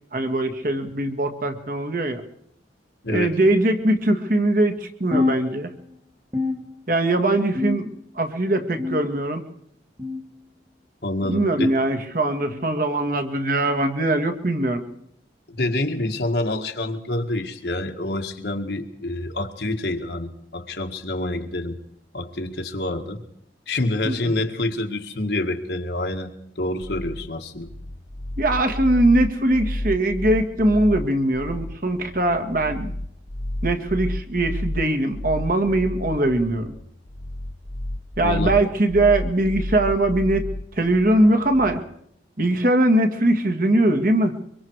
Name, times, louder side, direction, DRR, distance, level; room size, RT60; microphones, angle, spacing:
voice 1, 0.1-2.2 3.1-5.7 6.9-9.4 11.3-14.8 24.0-24.3 28.4-32.9 33.6-36.7 38.2-40.5 40.8-41.8 42.4-44.4, right 1 dB, 50° right, 6 dB, 1.9 m, -21 dB
voice 2, 3.0-3.3 11.0-11.8 15.5-21.8 22.1-23.2 23.7-27.7 38.2-38.6, left 2 dB, 65° left, 4 dB, 1.9 m, -27 dB
sound 1, 5.1-6.0 6.3-7.1 7.6-8.2 8.8-9.4 10.0-10.4 11.2-11.5 12.4-12.7 13.7-13.9 14.9-15.1 16.1-16.3 17.3-17.5 18.5-18.6 19.8-19.9, left 3 dB, 20° right, 1.8 m, -29 dB
sound 2, 26.8-41.8, left 1 dB, 35° left, 1.0 m, -31 dB
24.0 x 23.5 x 4.8 m, 0.71 s
head